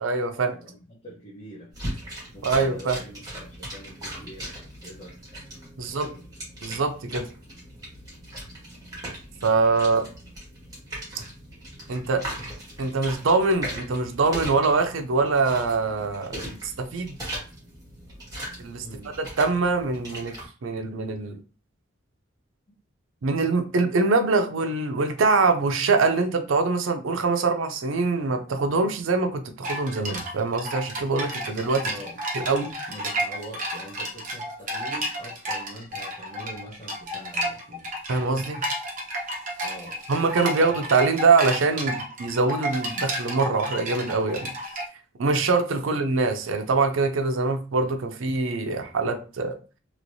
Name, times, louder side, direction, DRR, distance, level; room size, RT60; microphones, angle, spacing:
voice 1, 0.0-0.6 2.4-3.0 5.8-6.1 6.6-7.2 9.4-10.0 11.9-12.2 12.8-16.4 16.6-17.2 18.6-18.9 19.2-20.3 20.6-21.4 23.2-31.9 32.3-32.7 38.1-38.6 40.1-44.5 45.2-49.5, right 3 dB, 75° right, 7 dB, 0.5 m, -23 dB
voice 2, 0.5-1.7 2.3-5.2 5.8-6.2 9.8-10.1 18.8-19.2 31.8-32.2 32.9-37.9 39.6-40.8, equal, 30° left, -5 dB, 0.9 m, -44 dB
sound 1, 1.7-20.4, right 1 dB, 20° right, 1.6 m, -39 dB
sound 2, 29.6-44.9, right 1 dB, 40° right, 0.9 m, -32 dB
3.1 x 3.0 x 2.6 m, 0.35 s
head